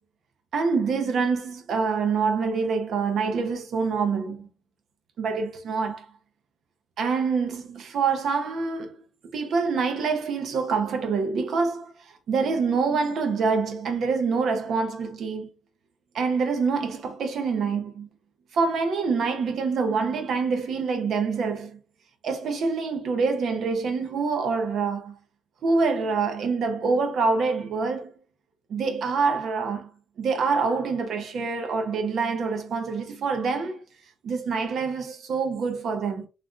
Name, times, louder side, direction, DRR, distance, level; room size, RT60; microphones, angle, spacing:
voice 1, 0.5-4.5 5.2-6.0 7.0-9.0 9.3-15.5 16.1-18.1 18.5-21.8 22.2-25.2 25.6-28.1 28.7-29.9 30.2-33.8 34.2-36.3, right 4 dB, 65° right, 0.8 m, -26 dB
3.2 x 2.5 x 2.5 m
cardioid pair, 95°, 0 cm